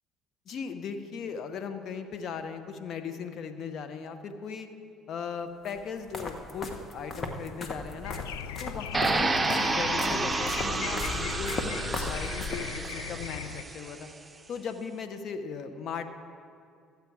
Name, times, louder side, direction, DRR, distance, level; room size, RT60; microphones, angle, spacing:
voice 1, 0.5-4.7 5.1-8.2 8.6-11.8 12.1-14.1 14.5-16.1, left 6 dB, 55° left, 8 dB, 0.9 m, -38 dB
sound 1, 5.6-12.9, left 3 dB, 40° left, 1.3 m, -37 dB
sound 2, 8.0-13.6, left 10 dB, 85° left, 0.3 m, -39 dB
sound 3, 8.9-13.9, right 3 dB, 20° right, 0.8 m, -30 dB
13.5 x 8.3 x 4.8 m, 2.4 s
hypercardioid pair, 60°, 0 cm